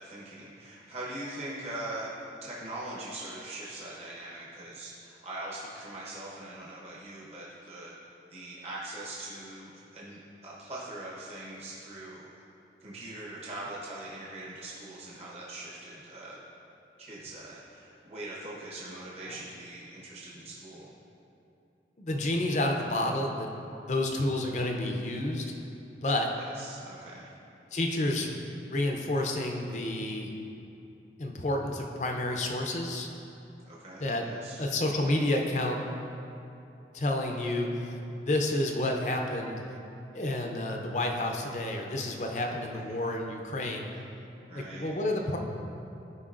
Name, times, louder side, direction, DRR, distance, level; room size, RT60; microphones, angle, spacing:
voice 1, 0.0-2.1 2.4-7.9 8.3-12.3 12.8-16.4 17.0-20.9 26.4-27.3 33.6-34.6 42.9-43.0 44.5-44.9, right 1 dB, 35° right, -6 dB, 1.0 m, -42 dB
voice 2, 22.0-25.5 26.0-26.3 27.7-30.3 31.2-33.1 34.0-34.3 34.6-35.8 36.9-39.6 40.1-43.9 44.5-45.4, left 1 dB, 40° left, 2 dB, 0.5 m, -30 dB
12.5 x 5.0 x 2.5 m, 2.8 s
head